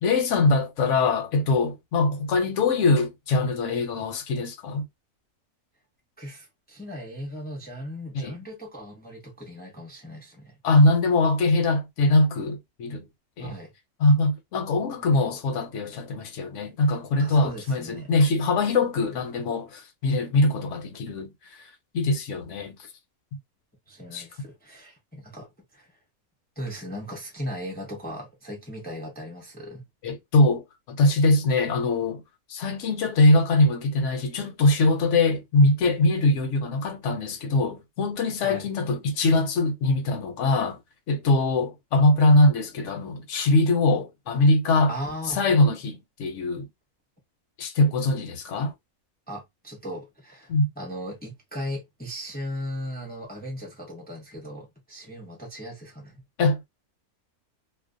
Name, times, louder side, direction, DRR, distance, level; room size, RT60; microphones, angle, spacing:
voice 1, 0.0-4.9 8.1-8.4 10.6-13.1 13.4-13.5 14.0-21.3 21.6-21.7 21.9-22.7 24.1-24.2 30.0-32.2 32.5-40.8 41.1-44.9 45.3-46.7 47.6-48.7 50.5-50.7 56.4-56.7, left 2 dB, 65° left, 0.8 m, -22 dB
voice 2, 6.2-10.6 13.4-13.7 15.3-15.4 17.2-18.1 23.9-25.9 26.6-29.9 38.4-38.7 44.9-45.5 49.3-56.2, equal, 10° left, 0.5 m, -37 dB
2.5 x 2.0 x 2.5 m
omnidirectional pair, 1.5 m